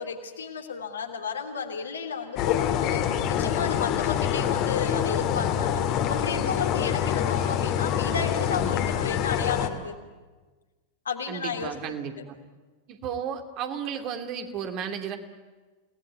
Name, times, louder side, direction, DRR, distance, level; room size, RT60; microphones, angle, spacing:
voice 1, 0.0-3.0 3.4-5.8 6.1-10.0 11.0-11.7, left 6 dB, 70° left, 3 dB, 3.1 m, -33 dB
sound 1, 2.4-9.7, left 9 dB, 40° left, 2.3 m, -26 dB
voice 2, 11.3-12.4 12.9-15.2, right 8 dB, 40° right, 5 dB, 2.8 m, -33 dB
29.0 x 18.5 x 9.8 m, 1.3 s
figure-of-eight pair, 90°, 0 cm